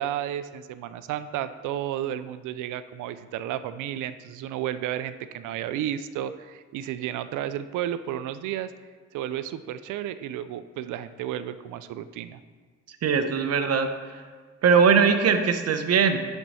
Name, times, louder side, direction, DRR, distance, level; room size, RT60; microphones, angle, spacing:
voice 1, 0.0-8.7 9.1-12.4, right 11 dB, 85° right, 13 dB, 0.5 m, -32 dB
voice 2, 13.0-14.2 14.6-16.2, right 6 dB, 55° right, 8 dB, 0.8 m, -21 dB
11.0 x 4.5 x 4.1 m, 1.5 s
cardioid pair, 90°, 30 cm